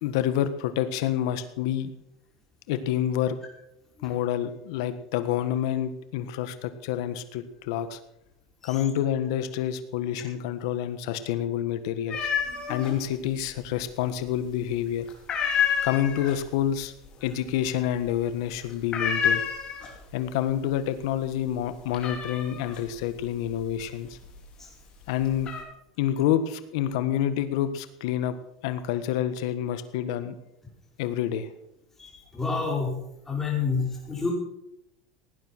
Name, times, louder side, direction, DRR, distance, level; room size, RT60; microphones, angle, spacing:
voice 1, 0.0-1.9 2.7-3.4 4.0-8.0 8.6-12.3 12.7-15.0 15.8-16.9 17.2-19.4 20.1-24.2 25.1-25.5 26.0-28.3 28.6-30.4 31.0-31.5, left 10 dB, 70° left, 11 dB, 1.5 m, -28 dB
sound 1, 12.1-12.9 13.2-14.0 14.4-14.7 15.1-20.2 20.5-21.0 21.4-24.5 25.0-25.6, left 7 dB, 35° left, 4.3 m, -29 dB
voice 2, 12.5-12.9 32.0-33.0 33.3-34.3, left 4 dB, 15° left, -1 dB, 5.5 m, -29 dB
17.5 x 9.7 x 6.1 m, 0.82 s
supercardioid pair, 125°, 3 cm